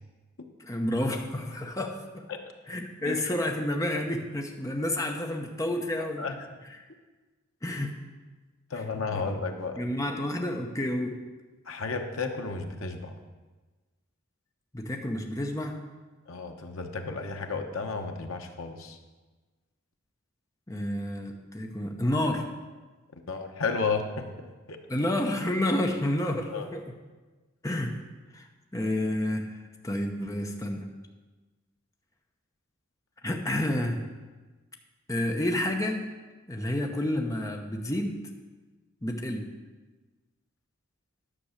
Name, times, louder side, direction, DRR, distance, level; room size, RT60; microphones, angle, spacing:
voice 1, 0.6-2.3 2.7-6.3 6.7-6.8 7.6-7.9 8.7-8.8 9.1-9.2 9.8-11.2 14.7-15.8 20.7-22.5 24.9-26.8 27.6-28.0 28.3-28.5 28.7-29.6 29.8-30.8 33.2-34.0 35.1-36.0 36.5-38.3 39.0-39.5, left 1 dB, 15° left, 2 dB, 0.8 m, -30 dB
voice 2, 8.7-9.8 11.7-13.1 16.3-19.0 23.3-24.3 24.7-24.8 26.5-26.7, left 4 dB, 80° left, 4 dB, 1.0 m, -32 dB
10.0 x 6.0 x 6.6 m, 1.3 s
head